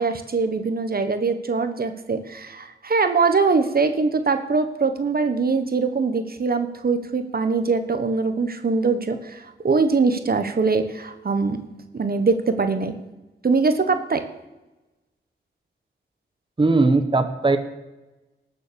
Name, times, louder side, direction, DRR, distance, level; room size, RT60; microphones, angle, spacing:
voice 1, 0.0-11.6 11.9-12.9 13.4-14.2, right 4 dB, 50° right, 8 dB, 1.1 m, -22 dB
voice 2, 16.6-17.6, right 3 dB, 25° right, 8 dB, 1.1 m, -18 dB
18.5 x 7.2 x 6.8 m, 1.1 s
wide cardioid pair, 100°, 20 cm